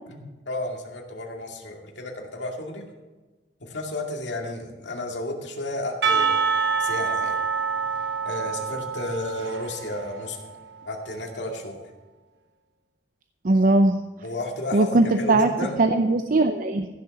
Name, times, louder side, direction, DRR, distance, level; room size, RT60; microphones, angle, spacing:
voice 1, 0.1-2.8 3.6-7.4 8.2-10.4 10.8-11.8 14.2-15.8, left 1 dB, 85° left, 1 dB, 2.3 m, -32 dB
Percussion / Church bell, 6.0-11.0, right 5 dB, 75° right, 1.3 m, -27 dB
voice 2, 13.4-14.0 14.7-15.5 15.8-16.9, right 2 dB, 50° right, 7 dB, 0.6 m, -19 dB
15.0 x 6.8 x 6.4 m, 1.2 s
head